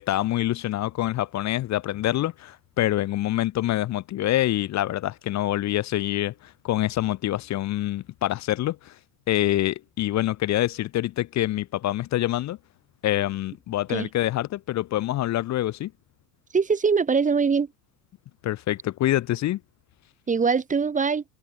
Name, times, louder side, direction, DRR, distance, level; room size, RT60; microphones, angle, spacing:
voice 1, 0.0-8.9 9.3-12.6 13.0-15.9 18.4-19.6, left 14 dB, 40° left, 1.0 m, -26 dB
voice 2, 16.5-17.7 20.3-21.2, right 5 dB, 20° right, 1.1 m, -22 dB
hypercardioid pair, 90°, 42 cm